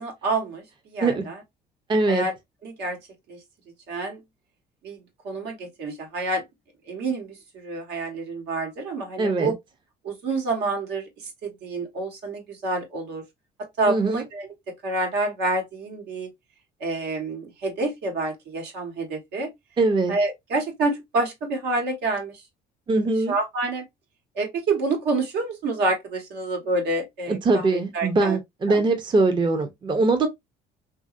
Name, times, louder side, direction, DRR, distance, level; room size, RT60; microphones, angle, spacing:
voice 1, 0.0-1.4 2.1-2.3 2.6-3.0 3.3-3.4 3.9-4.2 4.8-6.4 6.9-9.5 10.0-13.2 13.8-14.5 14.8-16.3 16.8-19.5 20.1-22.4 23.3-23.8 24.3-28.4 28.7-28.8, right 2 dB, 80° right, 1.3 m, -28 dB
voice 2, 1.9-2.3 9.2-9.5 13.9-14.2 19.8-20.1 22.9-23.3 27.3-30.3, right 3 dB, 25° right, 0.6 m, -22 dB
2.9 x 2.6 x 2.4 m
cardioid pair, 110°, 17 cm